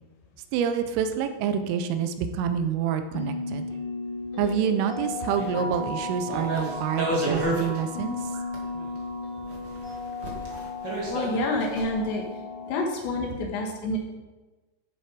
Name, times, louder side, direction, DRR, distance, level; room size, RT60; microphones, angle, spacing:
voice 1, 0.5-3.7 4.4-8.2, right 8 dB, 85° right, 8 dB, 3.4 m, -27 dB
sound 1, 3.1-12.8, left 3 dB, 30° left, 3.5 m, -35 dB
sound 2, 5.3-5.9 6.3-7.8 8.1-9.0 9.4-11.9, right 1 dB, 50° right, 1.4 m, -32 dB
voice 2, 11.1-12.2 12.7-14.0, left 2 dB, 70° left, 2 dB, 3.6 m, -28 dB
12.5 x 7.9 x 5.1 m, 1.2 s
omnidirectional pair, 5.7 m